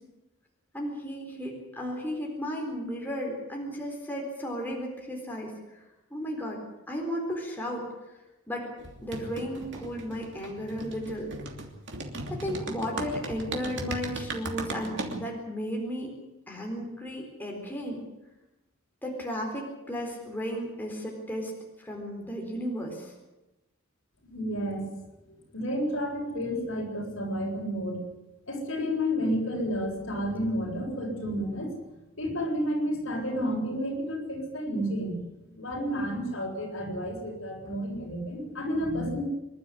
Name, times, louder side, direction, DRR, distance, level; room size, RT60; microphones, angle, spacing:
voice 1, 0.7-5.8 6.1-6.6 6.9-7.9 8.5-8.7 9.0-11.3 12.3-16.1 16.5-18.0 19.0-21.5 21.8-23.1, equal, 10° left, 0 dB, 4.0 m, -34 dB
sound 1, 8.8-15.2, right 2 dB, 60° right, 3.0 m, -37 dB
voice 2, 24.3-24.9 25.3-28.0 28.5-31.7 32.2-35.2 35.5-39.2, equal, 65° left, 0 dB, 7.5 m, -31 dB
26.0 x 12.0 x 9.9 m, 0.99 s
head